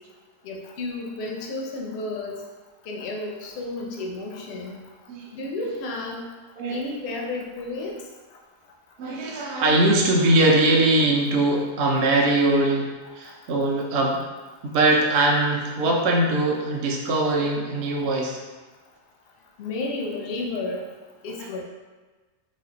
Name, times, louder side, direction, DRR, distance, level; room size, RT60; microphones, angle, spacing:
voice 1, 0.4-2.5 2.8-4.8 5.3-6.2 6.7-8.1 19.6-20.9 21.2-21.6, left 2 dB, 65° left, 0 dB, 0.6 m, -32 dB
voice 2, 9.0-14.2 14.6-18.4, right 2 dB, 60° right, -1 dB, 0.7 m, -21 dB
3.2 x 2.5 x 3.8 m, 1.3 s
omnidirectional pair, 1.6 m